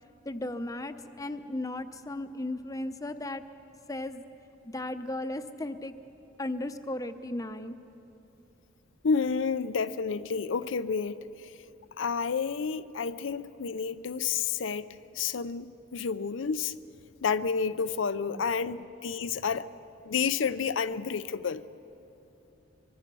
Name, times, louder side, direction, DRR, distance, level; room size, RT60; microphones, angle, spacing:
voice 1, 0.2-3.4 3.9-4.2 4.6-5.9 6.4-7.8 18.3-18.4, left 1 dB, 15° left, 9 dB, 0.7 m, -35 dB
voice 2, 9.0-11.5 12.0-14.9 15.1-16.7 17.2-19.7 20.0-21.6, left 5 dB, 75° left, 13 dB, 0.5 m, -30 dB
23.5 x 23.0 x 6.2 m, 2.9 s
head